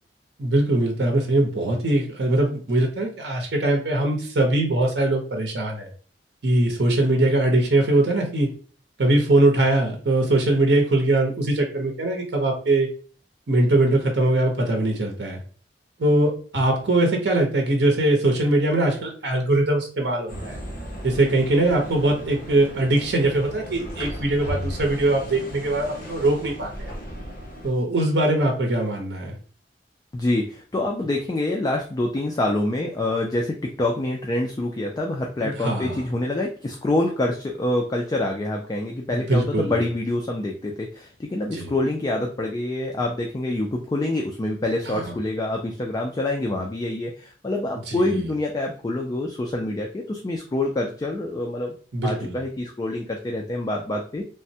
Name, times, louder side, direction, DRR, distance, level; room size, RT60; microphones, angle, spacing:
voice 1, 0.4-5.9 6.4-8.5 9.0-12.9 13.5-15.4 16.0-20.6 21.0-26.9 27.6-29.4 35.4-36.0 39.1-39.8 41.5-41.7 44.9-45.1 47.9-48.1 51.9-52.4, right 1 dB, 70° right, 2 dB, 0.7 m, -21 dB
sound 1, 20.3-27.7, equal, 50° left, 0.8 m, -36 dB
voice 2, 30.1-51.8 52.0-54.2, left 1 dB, 20° left, 1 dB, 0.3 m, -26 dB
3.3 x 2.1 x 2.7 m, 0.42 s
head